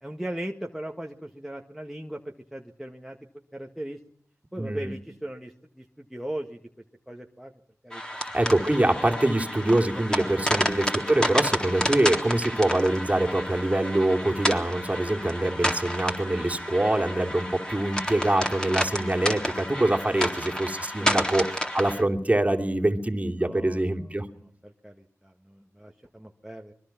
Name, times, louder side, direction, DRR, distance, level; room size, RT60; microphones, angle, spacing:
voice 1, 0.0-3.2 3.5-4.0 4.5-6.6 7.1-7.5 7.8-8.2 9.9-10.4 20.1-21.5 23.4-23.8 24.6-26.7, right 1 dB, 5° right, 1 dB, 1.7 m, -39 dB
voice 2, 4.6-4.9 8.2-24.3, right 1 dB, 25° right, 4 dB, 3.0 m, -24 dB
sound 1, 7.9-22.0, equal, 15° left, 3.8 m, -30 dB
24.5 x 22.5 x 6.0 m, 0.64 s
cardioid pair, 50°, 6 cm